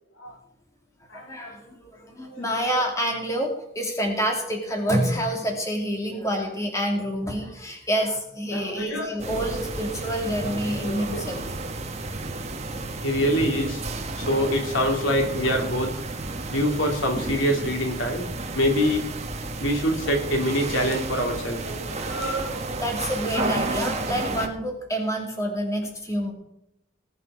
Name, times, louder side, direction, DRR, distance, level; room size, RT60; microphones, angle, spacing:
voice 1, 1.1-11.6 22.8-26.3, equal, 15° left, 1 dB, 2.6 m, -28 dB
voice 2, 8.5-9.2 10.4-11.3 13.0-15.9 16.5-18.3 18.5-19.0 19.6-22.6 23.3-23.5, equal, 75° left, 3 dB, 2.9 m, -25 dB
sound 1, 9.2-24.5, right 2 dB, 35° right, 1.4 m, -32 dB
19.5 x 8.3 x 5.0 m, 0.82 s
head